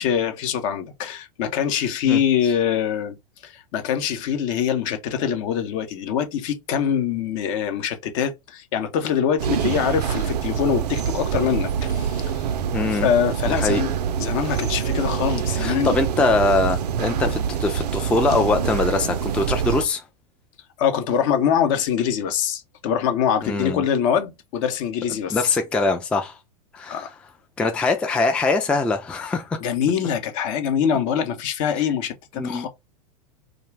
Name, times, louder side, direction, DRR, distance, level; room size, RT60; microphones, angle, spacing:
voice 1, 0.0-3.2 3.4-12.5 12.9-15.9 20.8-25.4 26.9-27.1 29.6-32.7, left 8 dB, 55° left, 0.7 m, -24 dB
sound 1, 9.4-19.8, right 8 dB, 75° right, 0.4 m, -25 dB
voice 2, 12.7-13.1 13.5-13.8 15.5-20.0 23.4-23.8 25.3-26.4 26.7-27.1 27.6-29.6 32.4-32.7, left 3 dB, 5° left, 0.3 m, -22 dB
2.4 x 2.2 x 3.1 m
hypercardioid pair, 100°, 21 cm